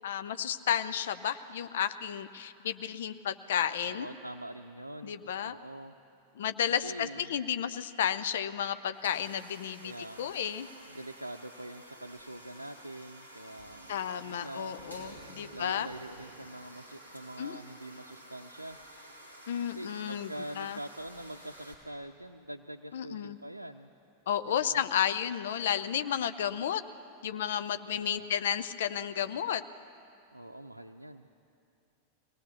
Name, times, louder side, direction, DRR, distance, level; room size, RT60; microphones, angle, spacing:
voice 1, 0.0-4.1 5.0-5.6 6.4-9.9 10.2-10.7 13.9-15.9 17.4-17.6 19.5-20.3 20.6-20.8 22.9-23.4 24.3-26.8 27.2-29.6, left 9 dB, 60° left, 12 dB, 0.6 m, -32 dB
voice 2, 3.8-5.9 6.8-7.3 9.8-10.4 10.9-18.8 19.6-23.9 24.5-24.9 27.9-28.3 30.3-31.3, right 1 dB, 85° right, 3 dB, 0.6 m, -45 dB
sound 1, 8.9-21.7, right 1 dB, 90° left, 3.3 m, -51 dB
23.0 x 18.5 x 6.8 m, 2.6 s
figure-of-eight pair, 90°, 0 cm